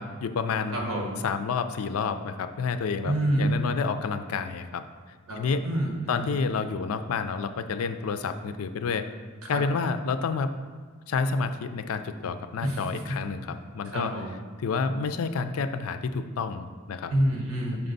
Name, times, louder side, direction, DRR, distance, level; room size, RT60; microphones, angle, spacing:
voice 1, 0.0-0.8 1.2-4.8 5.4-5.7 6.1-9.1 9.5-10.5 11.1-14.1 14.6-17.1, left 5 dB, 75° left, 10 dB, 0.4 m, -29 dB
voice 2, 0.7-1.2 3.0-3.6 5.3-6.3 9.4-9.6 12.6-13.0 13.9-14.3 17.1-17.9, right 1 dB, 75° right, 0 dB, 1.3 m, -28 dB
5.7 x 4.4 x 3.9 m, 1.5 s
head